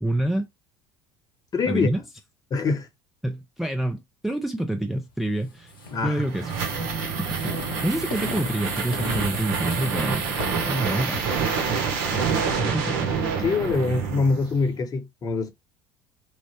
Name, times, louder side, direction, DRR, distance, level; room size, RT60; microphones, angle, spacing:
voice 1, 0.0-0.5 1.7-2.0 3.2-5.7 6.0-6.5 7.4-7.5 7.8-11.2 12.6-13.0, right 1 dB, ahead, 0.4 m, -27 dB
voice 2, 1.5-1.9 2.5-2.9 5.9-6.3 13.4-15.5, left 4 dB, 35° left, 0.8 m, -24 dB
sound 1, 5.7-13.6, left 3 dB, 80° left, 0.8 m, -39 dB
sound 2, 5.9-14.7, right 5 dB, 65° right, 0.7 m, -27 dB
3.1 x 2.1 x 2.8 m
hypercardioid pair, 65°, 11 cm